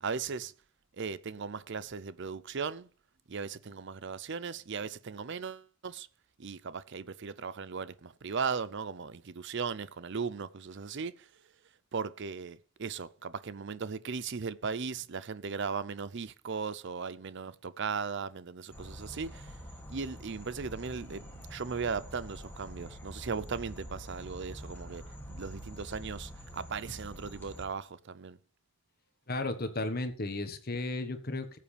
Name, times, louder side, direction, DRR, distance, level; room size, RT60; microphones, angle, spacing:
voice 1, 0.0-0.5 1.0-2.9 3.3-6.1 6.4-11.3 11.9-19.5 19.9-28.4, right 5 dB, 55° right, 0.5 m, -37 dB
sound 1, 18.7-27.6, equal, 10° left, 2.4 m, -46 dB
voice 2, 29.3-31.6, left 2 dB, 40° left, 1.3 m, -34 dB
18.5 x 7.6 x 3.3 m
head